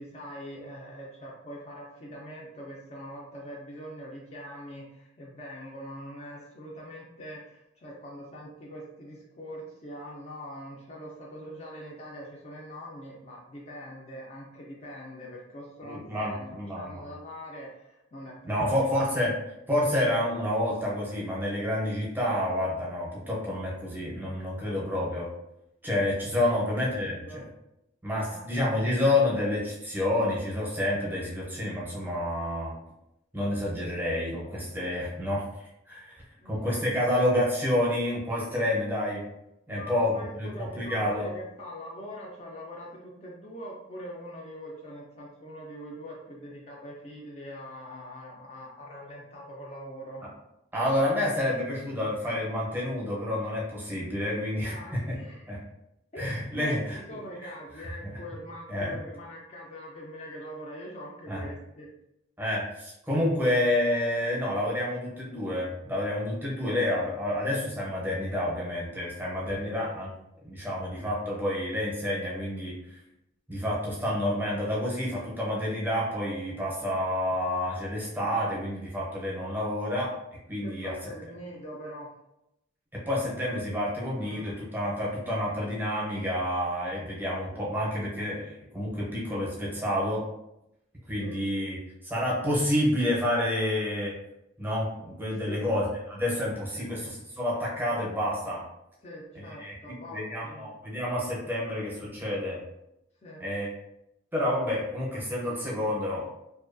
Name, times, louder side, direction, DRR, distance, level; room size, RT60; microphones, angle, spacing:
voice 1, 0.0-18.9 26.2-27.4 28.3-28.5 36.4-36.9 39.7-50.2 54.6-55.6 56.1-61.9 69.6-69.8 80.6-82.2 84.2-84.5 91.2-91.4 95.3-95.7 96.7-96.9 99.0-100.7 103.2-103.5, equal, 30° left, -3 dB, 0.3 m, -43 dB
voice 2, 15.8-17.0 18.4-19.3 19.7-25.3 25.8-27.4 28.0-32.7 33.3-35.4 35.9-39.2 39.7-41.3 50.2-50.3 50.7-55.1 55.5-55.6 56.2-57.0 57.4-57.5 58.0-58.1 58.7-58.9 61.3-61.4 62.4-70.1 70.4-73.0 73.5-80.1 80.5-81.0 82.9-90.2 91.1-91.8 92.0-94.1 94.6-98.6 99.4-102.6 103.4-103.7 104.3-106.3, left 1 dB, 10° right, -5 dB, 0.6 m, -29 dB
2.6 x 2.2 x 2.5 m, 0.86 s
head